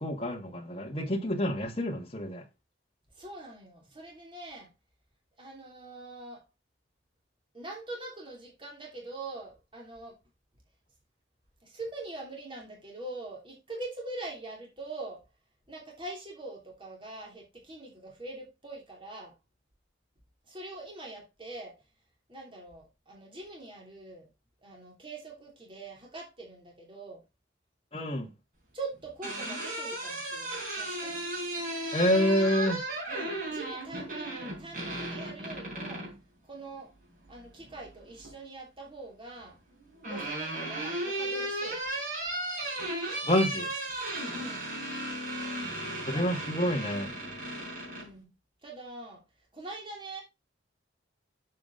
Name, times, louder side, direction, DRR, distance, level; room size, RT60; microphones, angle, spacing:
voice 1, 0.0-2.4 27.9-28.3 31.9-32.8 43.3-43.7 46.0-47.1, equal, 30° left, 1.8 m, -28 dB
voice 2, 3.1-4.7 5.4-6.4 7.5-10.2 11.6-15.2 15.7-19.3 20.5-21.7 22.3-24.3 24.6-27.2 28.7-31.2 33.1-36.1 36.4-36.9 37.3-39.6 40.0-41.8 44.3-44.7 46.1-46.6 47.9-48.3 48.6-49.2 49.5-50.2, right 2 dB, 25° right, 3.0 m, -43 dB
sound 1, 28.9-36.2 37.6-38.3 39.5-48.1, right 1 dB, 45° right, 4.4 m, -35 dB
7.5 x 6.0 x 3.9 m
head